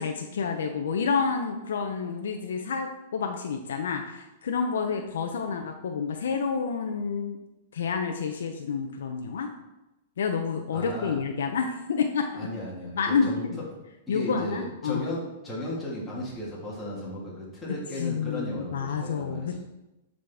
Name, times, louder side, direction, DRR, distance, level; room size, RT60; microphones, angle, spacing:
voice 1, 0.0-7.4 7.7-9.5 10.2-12.5 12.9-13.6 14.1-15.0 18.0-19.6, left 5 dB, 85° left, 4 dB, 0.6 m, -29 dB
voice 2, 10.7-11.2 12.4-13.6 14.1-19.6, left 1 dB, 10° left, -7 dB, 1.7 m, -35 dB
10.0 x 4.0 x 3.4 m, 0.98 s
hypercardioid pair, 155°, 0 cm